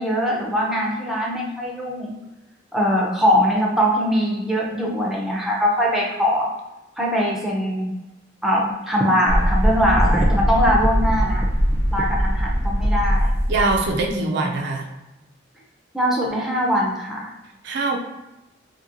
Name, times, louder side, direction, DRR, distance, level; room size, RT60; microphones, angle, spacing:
voice 1, 0.0-2.2 2.7-6.5 7.0-7.9 8.4-11.5 11.9-13.3 14.1-14.5 15.9-17.3, equal, ahead, -3 dB, 0.5 m, -21 dB
sound 1, 9.3-14.1, equal, 90° left, 1.1 m, -21 dB
voice 2, 13.5-14.9 17.6-18.0, right 3 dB, 65° right, 2 dB, 0.4 m, -23 dB
2.8 x 2.7 x 2.5 m, 1.0 s
head